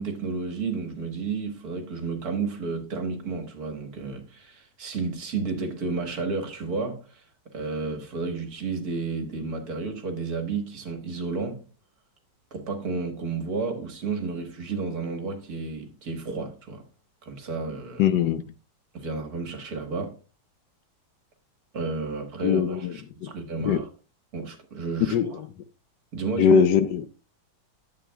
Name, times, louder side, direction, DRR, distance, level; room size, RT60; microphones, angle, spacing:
voice 1, 0.0-7.2 7.5-11.6 12.5-16.8 17.2-18.1 18.9-20.2 21.7-23.9 24.3-25.2 26.1-26.6, right 4 dB, 60° right, 1.8 m, -32 dB
voice 2, 18.0-18.4 22.4-22.9 23.2-23.3 23.6-23.8 25.0-25.5 26.4-27.1, left 7 dB, 80° left, 1.2 m, -21 dB
11.0 x 8.0 x 2.3 m
omnidirectional pair, 1.9 m